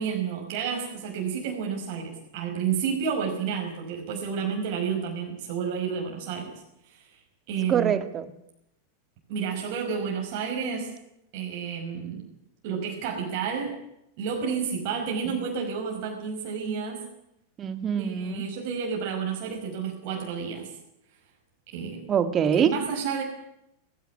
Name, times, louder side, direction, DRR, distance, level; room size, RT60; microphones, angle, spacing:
voice 1, 0.0-6.5 6.9-7.0 7.5-7.9 9.3-10.9 11.3-12.3 12.6-13.8 14.2-17.1 18.0-20.7 21.7-22.0 22.6-23.2, right 6 dB, 45° right, 0 dB, 5.2 m, -30 dB
voice 2, 7.7-8.3 15.3-15.4 17.6-18.4 22.1-22.7, right 8 dB, 25° right, 11 dB, 1.9 m, -24 dB
19.0 x 16.0 x 10.0 m, 0.82 s
figure-of-eight pair, 90°, 0 cm